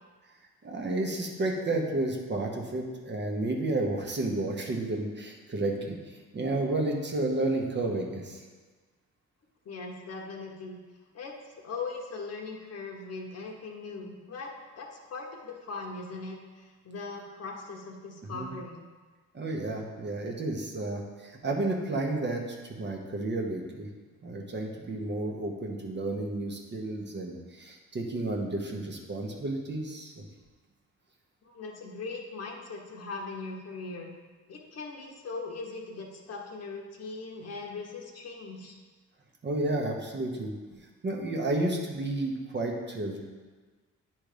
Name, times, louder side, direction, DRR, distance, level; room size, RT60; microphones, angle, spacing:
voice 1, 0.6-8.4 18.2-18.5 19.3-23.9 24.2-30.2 39.4-43.2, right 2 dB, 35° right, 0 dB, 1.2 m, -31 dB
voice 2, 9.6-10.8 11.1-14.5 14.8-18.9 31.4-34.1 34.5-38.7, left 3 dB, 55° left, 1 dB, 1.2 m, -40 dB
9.1 x 3.4 x 5.0 m, 1.4 s
cardioid pair, 90°, 30 cm